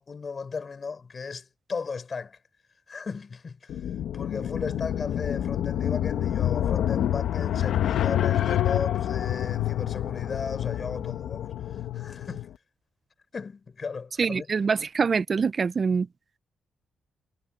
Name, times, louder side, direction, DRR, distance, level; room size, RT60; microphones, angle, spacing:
voice 1, 0.0-2.4 2.9-3.7 4.1-11.5 11.9-12.5 13.3-14.5, left 5 dB, 40° left, 4.1 m, -36 dB
sound 1, 3.7-12.5, left 11 dB, 80° left, 1.5 m, -27 dB
voice 2, 14.2-16.1, right 5 dB, 40° right, 0.8 m, -24 dB
cardioid pair, 100°, 0 cm